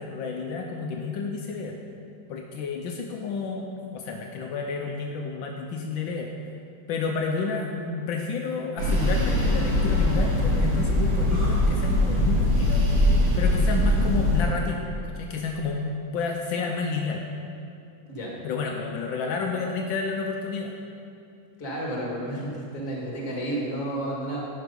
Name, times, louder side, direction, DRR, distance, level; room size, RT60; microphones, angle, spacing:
voice 1, 0.0-1.8 2.3-6.3 6.9-12.8 13.4-17.2 18.4-20.7, left 4 dB, 80° left, 1 dB, 1.4 m, -30 dB
sound 1, 8.8-14.4, left 1 dB, 75° right, 2.5 m, -22 dB
voice 2, 21.6-24.4, right 1 dB, 45° left, -3 dB, 2.0 m, -31 dB
10.5 x 5.6 x 5.2 m, 2.5 s
omnidirectional pair, 2.1 m